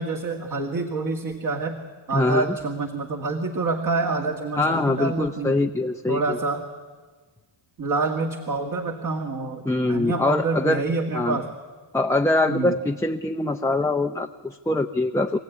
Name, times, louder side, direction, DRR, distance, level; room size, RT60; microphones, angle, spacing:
voice 1, 0.0-1.8 2.1-5.6 6.1-6.6 7.8-11.5 12.5-12.7, right 3 dB, 45° right, 3 dB, 2.1 m, -27 dB
voice 2, 2.1-2.5 4.6-6.4 9.6-10.8 11.1-11.4 11.9-15.4, left 2 dB, 5° left, 4 dB, 0.6 m, -23 dB
25.0 x 15.5 x 9.4 m, 1.4 s
cardioid pair, 115°, 46 cm